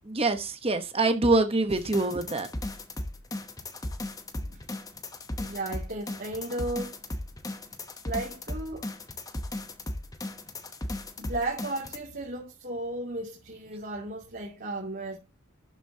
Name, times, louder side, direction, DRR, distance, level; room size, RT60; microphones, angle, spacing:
voice 1, 0.1-2.5, right 2 dB, 25° right, 1.0 m, -25 dB
sound 1, 1.7-12.0, left 1 dB, 15° left, 0.9 m, -36 dB
voice 2, 5.4-6.9 8.0-8.9 11.2-15.2, right 2 dB, 45° right, 2.5 m, -34 dB
12.0 x 8.2 x 2.8 m
head